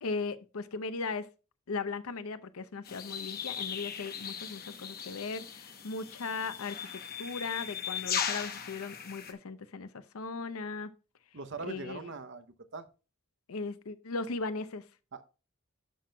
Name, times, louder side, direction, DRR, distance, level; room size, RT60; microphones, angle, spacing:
voice 1, 0.0-1.3 1.7-10.9 11.6-12.1 13.5-14.8, left 4 dB, 80° left, 0.6 m, -37 dB
sound 1, 2.8-9.3, left 8 dB, 45° left, 0.9 m, -38 dB
voice 2, 11.3-12.9 15.1-15.2, right 4 dB, 55° right, 0.7 m, -41 dB
11.5 x 6.0 x 2.2 m
head